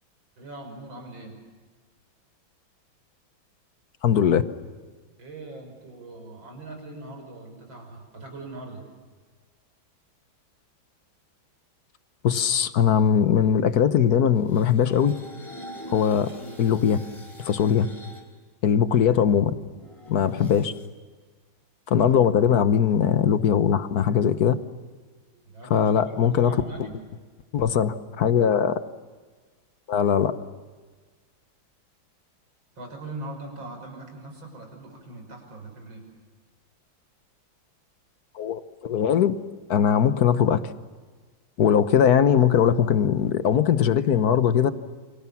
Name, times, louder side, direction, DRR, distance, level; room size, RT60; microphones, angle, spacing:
voice 1, 0.4-1.3 5.2-8.8 18.9-19.1 20.4-20.5 22.0-22.1 25.4-26.9 32.8-36.0, right 2 dB, 70° right, 3 dB, 6.6 m, -41 dB
voice 2, 4.0-4.4 12.2-15.1 15.9-16.3 16.6-17.0 17.4-17.9 18.6-19.5 20.1-20.7 21.9-24.6 25.7-26.9 27.5-28.8 29.9-30.3 38.3-39.3 39.7-40.6 41.6-44.7, left 8 dB, 55° left, 12 dB, 1.4 m, -20 dB
sound 1, 14.3-18.2 18.8-20.9, equal, 15° left, 3.7 m, -44 dB
29.0 x 25.0 x 7.2 m, 1.4 s
omnidirectional pair, 2.2 m